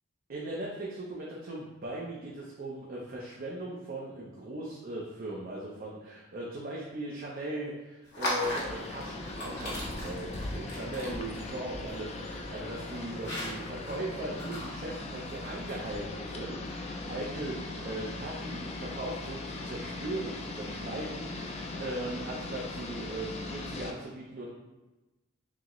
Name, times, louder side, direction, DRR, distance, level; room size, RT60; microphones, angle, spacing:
voice 1, 0.3-24.5, right 1 dB, 45° right, -4 dB, 0.5 m, -39 dB
sound 1, 8.0-16.0, left 1 dB, 55° left, 1.1 m, -39 dB
sound 2, 8.4-23.9, left 2 dB, 30° left, 0.4 m, -39 dB
5.9 x 2.1 x 3.0 m, 1.1 s
head